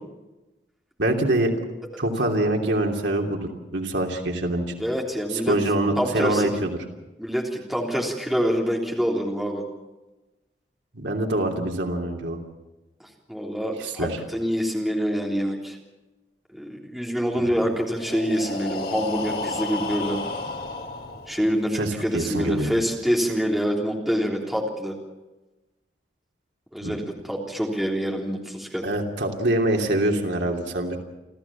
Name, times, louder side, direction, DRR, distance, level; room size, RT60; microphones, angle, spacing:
voice 1, 1.0-1.5 2.0-4.7 5.3-6.7 10.9-12.4 13.8-14.2 17.4-17.5 21.7-22.7 26.8-26.9 28.8-31.0, right 1 dB, 80° right, 1 dB, 3.0 m, -24 dB
voice 2, 4.8-5.6 6.0-6.5 7.2-9.7 13.0-15.8 16.5-20.2 21.3-25.0 26.7-28.9, equal, ahead, -2 dB, 3.5 m, -26 dB
Breathing, 17.8-21.7, left 3 dB, 55° left, 2.9 m, -32 dB
29.5 x 14.0 x 7.2 m, 1.1 s
head